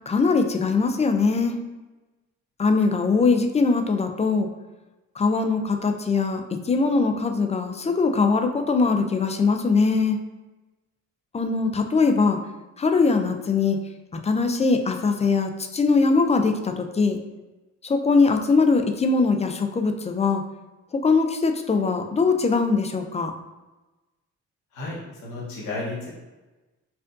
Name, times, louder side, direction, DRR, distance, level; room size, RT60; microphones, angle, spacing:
voice 1, 0.1-1.6 2.6-4.5 5.2-10.2 11.3-12.4 12.8-13.8 14.1-17.2 17.8-20.4 20.9-23.3, left 4 dB, 20° left, 5 dB, 0.3 m, -21 dB
voice 2, 24.7-26.1, left 2 dB, 85° left, -5 dB, 1.2 m, -33 dB
4.4 x 2.5 x 2.5 m, 1.1 s
cardioid pair, 90°, 30 cm